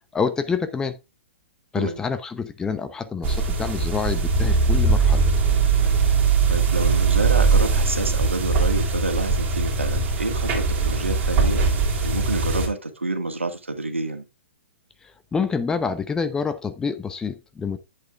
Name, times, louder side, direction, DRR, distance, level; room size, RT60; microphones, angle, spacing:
voice 1, 0.1-0.9 1.7-5.2 15.3-17.8, left 5 dB, 10° left, 0.7 m, -27 dB
sound 1, 3.2-12.7, right 4 dB, 25° right, 3.1 m, -21 dB
voice 2, 6.5-11.6 12.0-14.2, right 2 dB, 80° right, 1.8 m, -28 dB
10.5 x 8.4 x 2.4 m
figure-of-eight pair, 115°, 7 cm